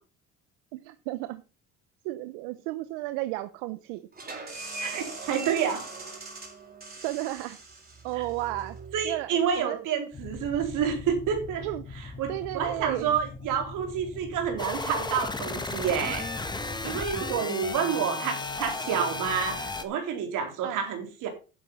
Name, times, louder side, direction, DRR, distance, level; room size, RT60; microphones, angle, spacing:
voice 1, 0.7-1.4 2.0-4.0 7.0-7.6 8.0-8.8 9.0-9.8 11.6-11.8 12.3-13.1 20.6-20.8, right 17 dB, 90° right, 13 dB, 0.8 m, -33 dB
sound 1, 4.1-9.6, right 3 dB, 30° right, 4.9 m, -41 dB
voice 2, 4.8-5.9 8.2-8.3 8.9-11.6 12.2-16.3 16.8-21.3, right 7 dB, 70° right, 5 dB, 4.2 m, -29 dB
sound 2, 10.1-17.4, left 3 dB, 30° left, 3.1 m, -42 dB
sound 3, 14.6-19.8, left 3 dB, 15° left, 1.6 m, -34 dB
10.5 x 7.9 x 5.5 m, 0.33 s
supercardioid pair, 90°, 33 cm